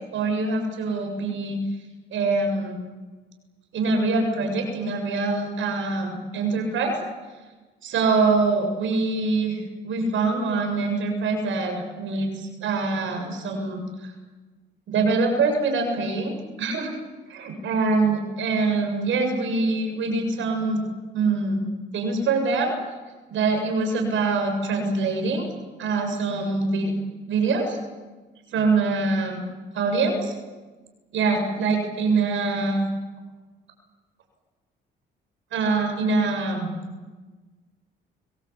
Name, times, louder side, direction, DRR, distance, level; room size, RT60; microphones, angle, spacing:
voice 1, 0.1-1.6 2.1-2.8 3.7-6.9 7.8-14.1 14.9-16.9 17.3-20.8 21.1-21.7 21.9-22.7 23.3-25.5 25.8-26.9 27.3-27.8 28.5-29.4 29.7-30.3 31.1-32.8 35.5-36.7, right 3 dB, 75° right, 4 dB, 7.4 m, -24 dB
24.5 x 24.0 x 8.6 m, 1.3 s
cardioid pair, 90°, 20 cm